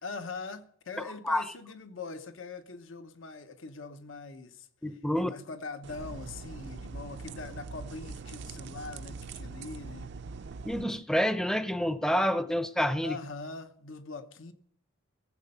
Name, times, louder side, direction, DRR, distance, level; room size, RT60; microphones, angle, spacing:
voice 1, 0.0-4.7 5.1-10.1 13.0-14.5, left 4 dB, 70° left, 0.9 m, -42 dB
voice 2, 4.8-5.3 10.6-13.2, equal, 5° left, 0.6 m, -28 dB
sound 1, 5.8-10.8, right 4 dB, 60° right, 0.5 m, -42 dB
19.0 x 7.7 x 5.4 m
head